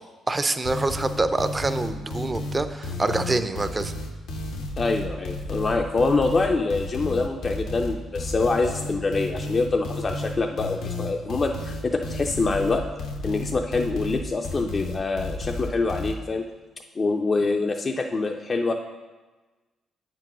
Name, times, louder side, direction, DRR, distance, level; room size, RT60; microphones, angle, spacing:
voice 1, 0.3-3.9, right 2 dB, 20° right, 10 dB, 0.5 m, -26 dB
sound 1, 0.6-16.1, left 2 dB, 85° left, 1.0 m, -32 dB
voice 2, 4.8-12.8 13.2-16.4 17.0-18.7, left 3 dB, 35° left, 2 dB, 0.5 m, -25 dB
7.9 x 4.6 x 6.1 m, 1.2 s
cardioid pair, 90°, 0 cm